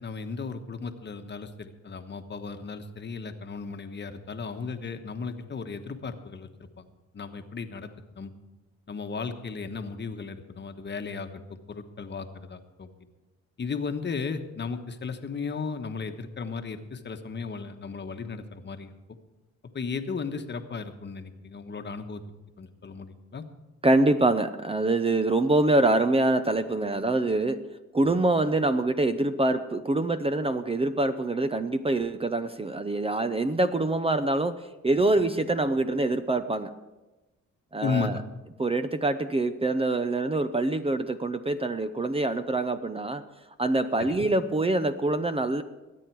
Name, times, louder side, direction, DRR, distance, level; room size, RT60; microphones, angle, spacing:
voice 1, 0.0-6.5 6.8-6.9 7.1-8.3 8.9-12.9 13.6-18.9 19.7-22.2 22.6-23.4 37.8-38.2 44.0-44.1, left 5 dB, 35° left, 7 dB, 1.2 m, -35 dB
voice 2, 23.8-27.6 27.9-34.6 34.8-36.7 37.7-38.2 38.6-43.2 43.6-45.6, right 2 dB, 20° right, 10 dB, 0.7 m, -25 dB
21.5 x 9.0 x 4.6 m, 1.1 s
cardioid pair, 90°, 30 cm